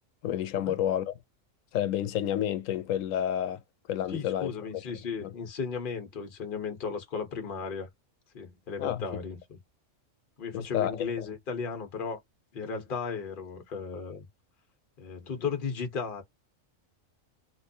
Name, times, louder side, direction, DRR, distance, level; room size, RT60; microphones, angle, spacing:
voice 1, 0.2-1.1 1.7-3.6 3.9-4.8 5.2-5.3 8.8-9.0 10.5-11.3, left 11 dB, 90° left, 1.0 m, -30 dB
voice 2, 4.1-7.9 8.3-9.4 10.4-12.2 12.5-14.2 15.0-16.2, left 5 dB, 45° left, 1.1 m, -35 dB
3.2 x 2.9 x 2.7 m
omnidirectional pair, 1.3 m